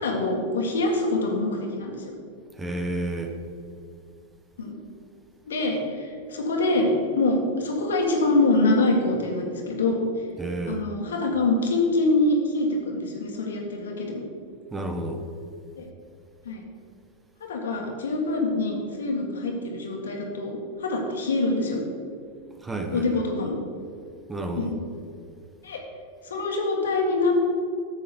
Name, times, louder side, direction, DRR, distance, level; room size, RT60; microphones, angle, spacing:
voice 1, 0.0-2.1 4.6-4.8 5.5-10.0 10.7-14.2 15.8-15.9 16.4-16.6 17.4-21.8 22.9-23.6 24.6-24.8 25.6-25.8 26.2-27.5, left 2 dB, 90° left, 1 dB, 1.8 m, -25 dB
voice 2, 2.5-3.4 10.4-10.8 14.7-15.2 22.6-23.2 24.3-24.7, right 2 dB, 10° right, 5 dB, 1.0 m, -31 dB
9.4 x 7.7 x 4.3 m, 2.3 s
hypercardioid pair, 120°, 0 cm